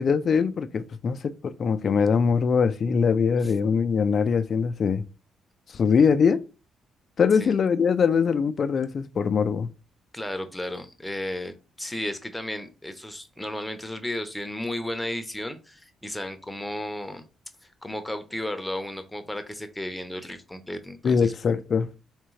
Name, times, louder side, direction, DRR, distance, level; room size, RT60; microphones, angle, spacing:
voice 1, 0.0-5.0 5.7-6.4 7.2-9.7 21.0-21.9, left 6 dB, 50° left, 0.3 m, -22 dB
voice 2, 10.1-17.2 17.8-21.3, left 1 dB, 5° left, 0.7 m, -34 dB
3.5 x 3.3 x 3.2 m
cardioid pair, 90°, 0 cm